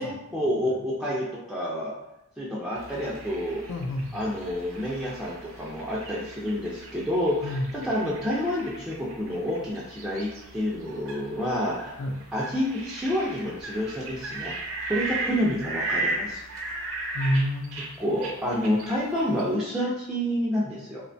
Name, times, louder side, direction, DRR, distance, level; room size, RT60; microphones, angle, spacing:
voice 1, 0.0-1.9 2.4-3.6 4.1-12.0 12.3-14.5 14.9-16.4 16.7-16.9 18.0-21.0, equal, 5° right, -7 dB, 0.3 m, -29 dB
sound 1, 2.8-19.5, right 2 dB, 70° right, 0.6 m, -37 dB
voice 2, 3.7-4.4 7.4-7.7 12.0-12.2 17.1-17.9, equal, 85° left, 3 dB, 0.3 m, -28 dB
2.8 x 2.1 x 2.6 m, 0.88 s
head